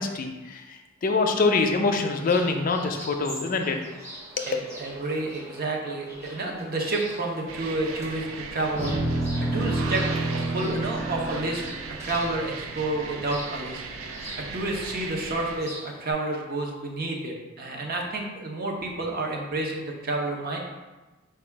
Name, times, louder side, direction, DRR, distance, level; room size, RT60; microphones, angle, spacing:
voice 1, 0.0-3.8, left 3 dB, 45° left, 4 dB, 0.4 m, -25 dB
sound 1, 2.1-16.1, right 1 dB, 15° right, 0.7 m, -44 dB
voice 2, 4.5-8.9 9.5-10.0 10.5-11.6 12.0-13.8 14.5-20.6, right 2 dB, 50° right, 0 dB, 0.7 m, -30 dB
sound 2, 7.5-15.6, right 4 dB, 85° right, 0.4 m, -38 dB
sound 3, 8.7-13.2, right 2 dB, 30° right, 1.0 m, -29 dB
4.7 x 2.3 x 4.4 m, 1.1 s
head